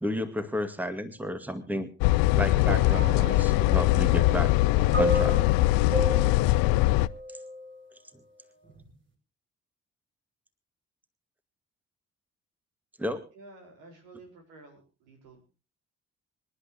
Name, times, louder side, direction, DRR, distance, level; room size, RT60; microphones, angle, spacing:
voice 1, 0.0-1.9 2.3-4.5 5.0-5.4 13.0-13.2, equal, 5° right, 10 dB, 2.0 m, -32 dB
sound 1, 2.0-7.1, left 18 dB, 65° left, 0.6 m, -22 dB
sound 2, 2.7-7.8 8.7-8.9, equal, 30° right, 6.0 m, -34 dB
voice 2, 13.4-14.8 15.1-15.4, right 2 dB, 75° right, 2 dB, 4.7 m, -51 dB
26.5 x 11.5 x 2.9 m, 0.33 s
figure-of-eight pair, 40°, 37 cm